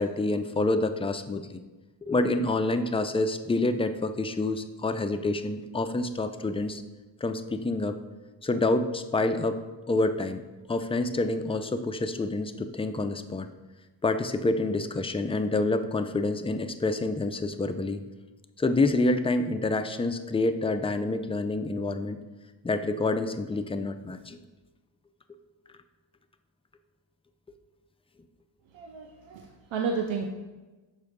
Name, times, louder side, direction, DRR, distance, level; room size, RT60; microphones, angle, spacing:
voice 1, 0.0-1.6 2.0-6.8 7.2-8.0 8.4-10.4 10.7-13.5 14.0-18.0 18.6-22.2 22.6-24.4, left 2 dB, 15° left, 8 dB, 0.3 m, -27 dB
voice 2, 28.7-30.3, right 5 dB, 90° right, 3 dB, 0.6 m, -32 dB
6.4 x 4.6 x 3.6 m, 1.2 s
cardioid pair, 70°, 45 cm